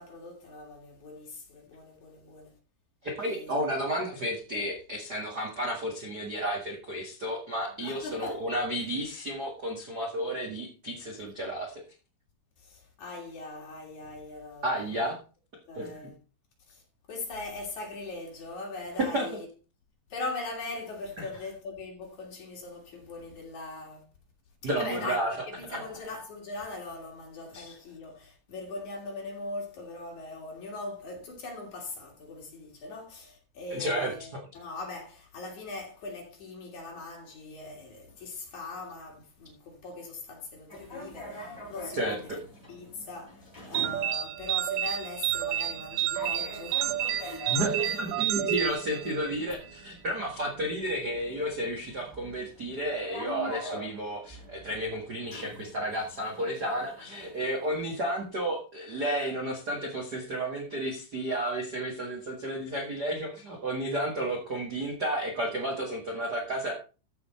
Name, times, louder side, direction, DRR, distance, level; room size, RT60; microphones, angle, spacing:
voice 1, 0.0-2.6 3.2-3.5 7.8-8.4 12.6-14.9 15.7-16.2 16.7-16.8 17.1-19.5 20.1-24.0 24.8-42.3 42.7-48.6 49.0-49.4, left 3 dB, 45° left, 3.9 m, -41 dB
voice 2, 3.0-11.8 14.6-15.2 15.7-16.1 19.0-19.3 21.2-21.3 24.6-25.3 25.7-25.8 27.5-27.7 33.7-34.4 41.9-42.4 47.5-66.7, right 1 dB, 55° right, 1.0 m, -32 dB
sound 1, 40.7-58.2, left 1 dB, 10° left, 4.7 m, -45 dB
sound 2, 43.8-49.5, right 12 dB, 85° right, 2.9 m, -30 dB
14.0 x 6.0 x 4.3 m
omnidirectional pair, 5.1 m